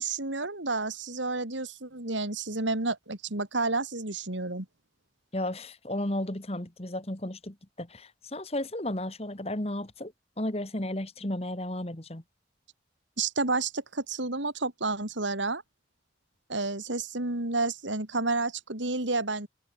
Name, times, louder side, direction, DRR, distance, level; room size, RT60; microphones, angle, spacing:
voice 1, 0.0-4.7 13.2-15.6 16.5-19.5, right 3 dB, 85° right, 3.4 m, -30 dB
voice 2, 5.3-10.1 10.4-12.2, left 1 dB, 35° left, 1.9 m, -33 dB
open air
head